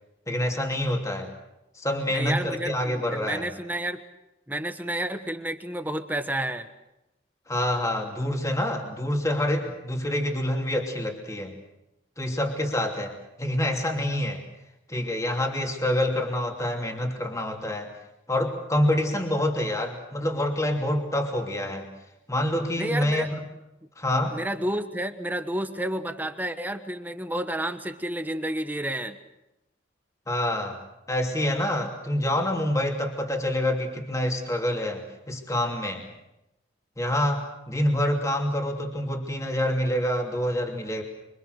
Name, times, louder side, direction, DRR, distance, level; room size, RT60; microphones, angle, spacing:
voice 1, 0.3-1.3 1.7-3.5 7.5-11.6 12.2-14.4 14.9-17.9 18.3-21.9 22.3-23.3 24.0-24.4 30.3-36.1 37.0-41.0, left 1 dB, 15° left, 2 dB, 2.8 m, -27 dB
voice 2, 2.1-4.0 4.5-6.7 22.8-23.3 24.3-29.2, right 1 dB, 10° right, 8 dB, 1.2 m, -30 dB
25.5 x 25.5 x 6.6 m, 0.90 s
head